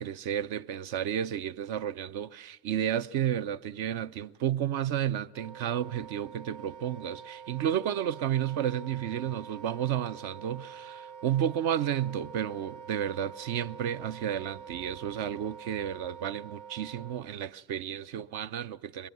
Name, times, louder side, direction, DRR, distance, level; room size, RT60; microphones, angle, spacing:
voice 1, 0.0-19.1, right 10 dB, 65° right, 0.7 m, -32 dB
Wind instrument woodwind instrument, 5.3-17.2, right 7 dB, 50° right, 1.3 m, -46 dB
22.5 x 20.5 x 9.6 m
hypercardioid pair, 65°, 42 cm